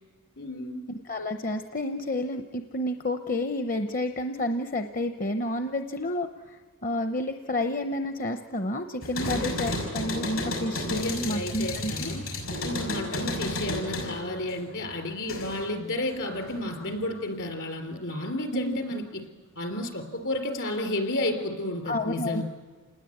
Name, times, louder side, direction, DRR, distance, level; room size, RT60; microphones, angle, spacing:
voice 1, 0.4-0.9 9.2-9.4 10.9-12.3 12.6-19.2 19.6-22.4, left 1 dB, 60° left, 6 dB, 3.7 m, -32 dB
voice 2, 0.9-12.1 18.5-18.8 21.9-22.4, left 1 dB, 40° left, 8 dB, 0.8 m, -30 dB
sound 1, 9.0-15.7 16.1-16.9, left 1 dB, 75° left, 6.0 m, -33 dB
28.0 x 20.0 x 8.6 m, 1.5 s
head